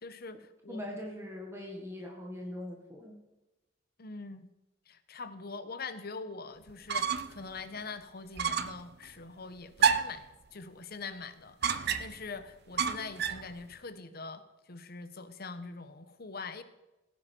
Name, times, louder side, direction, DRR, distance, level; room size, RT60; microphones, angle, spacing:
voice 1, 0.0-0.8 4.0-4.5 4.9-10.2 10.5-16.6, left 4 dB, 55° left, 11 dB, 1.1 m, -43 dB
voice 2, 0.7-3.2, left 1 dB, 15° right, 0 dB, 1.7 m, -41 dB
sound 1, 6.7-7.4 7.8-7.9 8.4-8.8 9.8-10.2 11.6-12.3 12.8-13.5, right 7 dB, 55° right, 0.7 m, -29 dB
16.5 x 10.0 x 4.6 m, 0.99 s
head